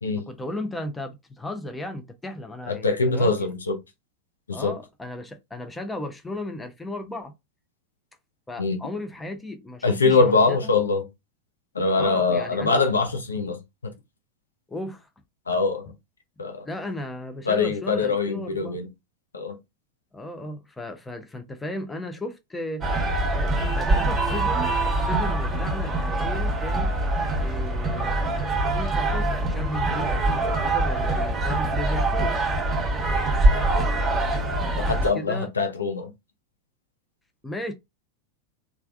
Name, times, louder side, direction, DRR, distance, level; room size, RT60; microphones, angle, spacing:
voice 1, 0.2-3.4 4.5-7.3 8.5-10.6 12.0-12.8 14.7-15.1 16.6-18.8 20.1-22.9 23.3-26.9 27.4-28.2 28.6-32.4 34.8-35.5 37.4-37.7, left 1 dB, 10° left, 0.6 m, -35 dB
voice 2, 2.7-3.8 4.5-4.7 8.6-8.8 9.8-11.0 11.7-13.6 13.8-13.9 15.5-15.9 16.4-16.7 17.5-18.9 19.3-19.6 34.8-36.1, left 4 dB, 75° left, 0.6 m, -23 dB
sound 1, 22.8-35.1, right 2 dB, 15° right, 1.1 m, -24 dB
3.3 x 2.4 x 2.4 m
figure-of-eight pair, 90°, 0 cm